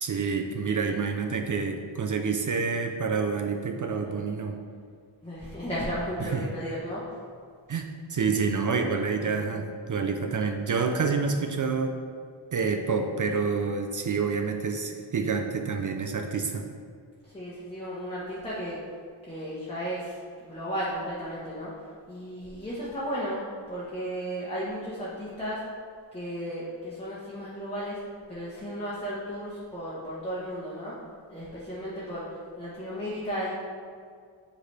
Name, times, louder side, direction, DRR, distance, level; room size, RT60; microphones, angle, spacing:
voice 1, 0.0-4.6 6.2-6.5 7.7-12.0 12.5-16.7, right 5 dB, 45° right, 5 dB, 0.4 m, -28 dB
voice 2, 5.2-7.2 9.2-9.3 17.2-18.8 19.3-21.7 22.1-23.4 23.7-25.6 26.1-28.0 28.3-30.9 31.3-32.3 32.6-33.5, equal, 10° left, -8 dB, 1.1 m, -34 dB
8.2 x 4.0 x 3.3 m, 2.1 s
wide cardioid pair, 115°, 47 cm